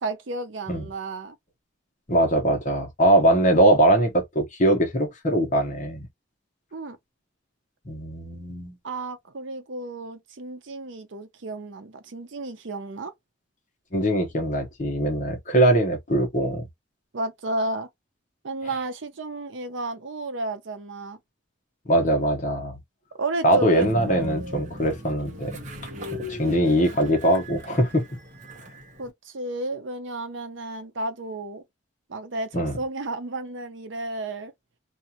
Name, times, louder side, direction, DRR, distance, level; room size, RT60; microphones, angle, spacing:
voice 1, 0.0-1.4 6.7-7.0 8.8-13.1 17.1-17.9 18.4-21.2 23.2-24.4 29.0-31.6 32.1-34.5, right 2 dB, 75° right, 0.6 m, -32 dB
voice 2, 2.1-6.1 7.9-8.8 13.9-16.7 21.9-22.8 23.4-25.5 26.3-28.1 32.5-32.7, right 1 dB, 40° left, 1.0 m, -21 dB
Train, 23.8-29.1, equal, 40° right, 0.9 m, -38 dB
2.5 x 2.4 x 2.8 m
head